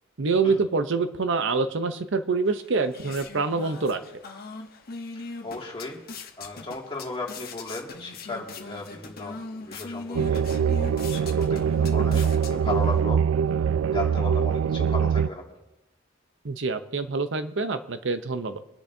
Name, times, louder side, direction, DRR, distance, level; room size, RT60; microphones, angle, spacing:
voice 1, 0.2-4.0 16.4-18.6, right 4 dB, 65° right, 9 dB, 0.7 m, -26 dB
sound 1, 2.5-13.0, left 3 dB, 50° left, 1.1 m, -41 dB
voice 2, 5.1-6.0 6.4-13.3 13.5-15.4, left 2 dB, 25° left, -2 dB, 2.3 m, -36 dB
sound 2, 10.1-15.3, right 7 dB, 85° right, 0.3 m, -23 dB
24.5 x 10.5 x 2.7 m, 0.97 s
head